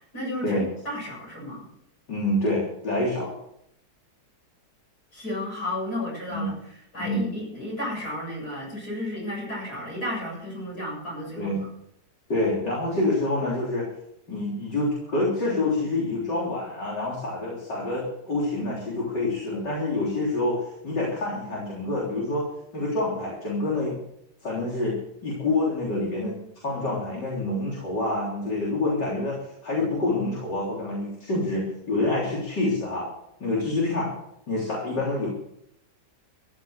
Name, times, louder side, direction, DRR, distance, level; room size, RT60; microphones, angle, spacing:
voice 1, 0.1-1.7 5.1-11.7, left 1 dB, 65° left, -2 dB, 8.4 m, -33 dB
voice 2, 2.1-3.3 6.3-6.5 7.0-7.2 11.4-11.6 12.3-13.9 14.3-22.4 22.7-24.0 24.4-26.4 26.6-33.1 33.4-34.1 34.5-35.3, left 2 dB, 80° left, -6 dB, 4.4 m, -27 dB
15.0 x 11.0 x 6.8 m, 0.77 s
omnidirectional pair, 1.8 m